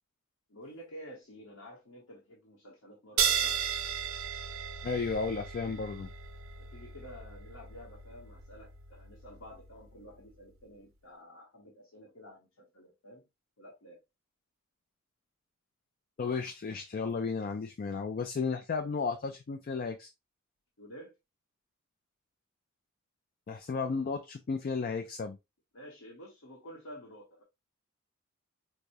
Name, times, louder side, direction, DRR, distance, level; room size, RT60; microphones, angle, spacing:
voice 1, 0.5-3.6 6.6-13.3 13.6-14.0 20.8-21.1 25.7-27.4, equal, 85° left, 1.0 m, -50 dB
sound 1, 3.2-10.2, right 8 dB, 70° right, 0.5 m, -35 dB
voice 2, 4.8-6.1 16.2-20.1 23.5-25.4, left 4 dB, 45° left, 0.3 m, -33 dB
4.7 x 2.1 x 2.6 m
head